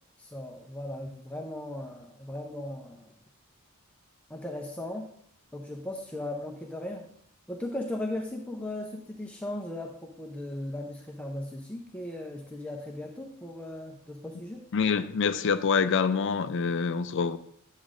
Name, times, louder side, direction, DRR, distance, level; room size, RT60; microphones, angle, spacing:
voice 1, 0.2-3.1 4.3-5.1 5.5-7.1 7.5-14.6, left 1 dB, 5° left, 1 dB, 0.6 m, -37 dB
voice 2, 14.7-17.4, left 5 dB, 60° left, 12 dB, 0.4 m, -26 dB
10.0 x 7.3 x 2.5 m, 0.67 s
head